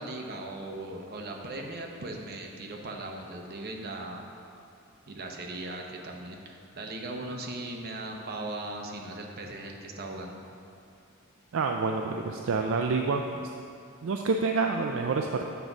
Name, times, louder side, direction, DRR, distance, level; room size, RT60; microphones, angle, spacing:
voice 1, 0.0-4.3 5.1-10.4, right 2 dB, 50° right, 1 dB, 0.8 m, -38 dB
voice 2, 11.5-13.5 14.0-15.5, right 4 dB, 65° right, 2 dB, 0.4 m, -28 dB
8.1 x 3.9 x 6.0 m, 2.6 s
head